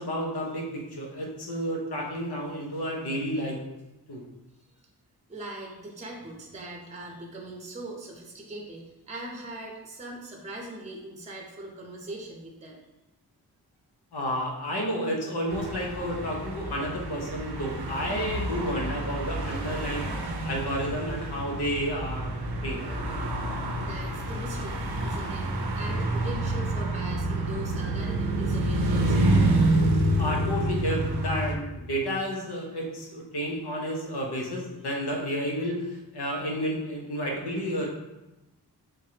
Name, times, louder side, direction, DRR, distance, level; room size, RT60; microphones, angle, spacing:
voice 1, 0.0-3.6 4.1-4.2 14.1-22.3 22.6-22.8 30.2-37.9, equal, 85° left, -1 dB, 1.0 m, -31 dB
voice 2, 4.6-4.9 5.3-12.8 23.2-29.7, right 1 dB, 20° right, -1 dB, 0.6 m, -41 dB
sound 1, 15.5-31.5, right 1 dB, 85° right, 0.7 m, -28 dB
3.7 x 3.3 x 2.8 m, 1.0 s
wide cardioid pair, 105°, 39 cm